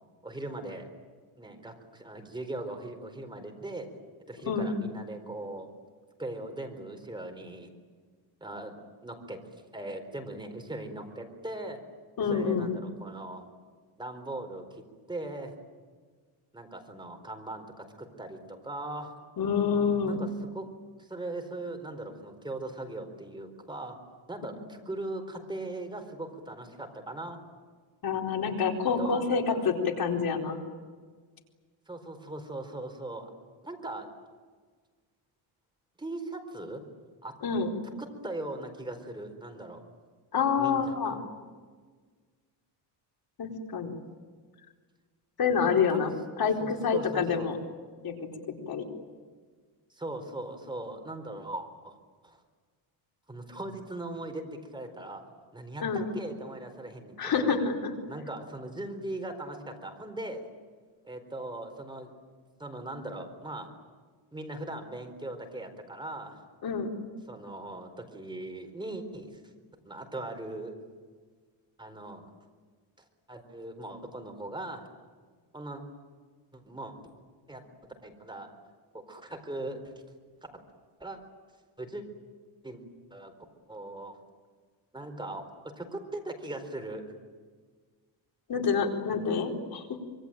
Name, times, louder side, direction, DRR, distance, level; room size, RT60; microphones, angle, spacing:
voice 1, 0.2-0.9 1.4-3.9 4.3-5.7 6.2-7.7 8.4-8.8 9.0-9.4 9.7-11.8 12.3-13.4 14.0-14.8 15.1-15.5 16.5-19.1 20.0-20.3 20.5-20.7 21.0-24.0 24.3-27.4 29.0-29.6 31.9-33.3 33.6-34.1 36.0-36.8 37.2-37.3 38.0-39.8 40.6-41.2 45.6-46.1 46.6-47.5 49.9-52.0 52.2-52.4 53.3-55.2 55.5-55.8 56.1-57.6 58.1-60.5 61.0-62.1 62.6-63.7 64.3-66.4 67.3-69.4 69.8-70.7 71.8-72.2 73.3-74.9 75.5-75.8 76.5-76.9 77.5-77.6 78.0-78.5 78.9-79.9 81.0-81.2 81.8-82.0 82.6-82.8 83.1-83.3 83.7-84.2 84.9-87.0, right 2 dB, 10° right, 5 dB, 4.4 m, -39 dB
voice 2, 12.2-12.7 19.4-20.2 28.0-30.6 37.4-37.7 40.3-41.2 43.4-43.9 45.4-46.1 46.4-47.6 48.0-48.1 48.7-48.8 55.8-56.0 57.2-57.9 66.6-66.9 88.5-89.8, left 6 dB, 50° left, 2 dB, 4.4 m, -27 dB
26.0 x 22.5 x 9.1 m, 1.5 s
cardioid pair, 125°, 46 cm